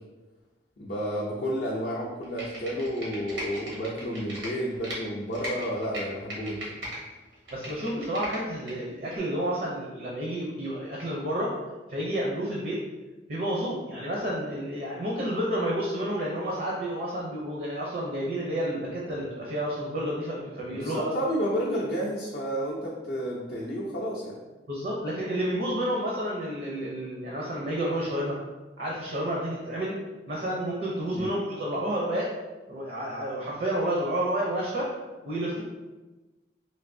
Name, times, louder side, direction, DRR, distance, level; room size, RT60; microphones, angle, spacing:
voice 1, 0.8-6.9 20.7-24.4 31.1-31.3, equal, 55° left, -5 dB, 0.4 m, -31 dB
Computer keyboard, 2.2-5.0 5.3-7.0 7.3-8.7 9.1-9.2, equal, 85° right, 1.0 m, -38 dB
voice 2, 7.5-11.6 11.9-12.8 13.3-21.1 24.7-28.4 28.8-30.0 30.3-32.3 32.7-34.9 35.3-35.6, right 1 dB, 55° right, -4 dB, 0.5 m, -30 dB
3.3 x 2.6 x 2.6 m, 1.2 s
head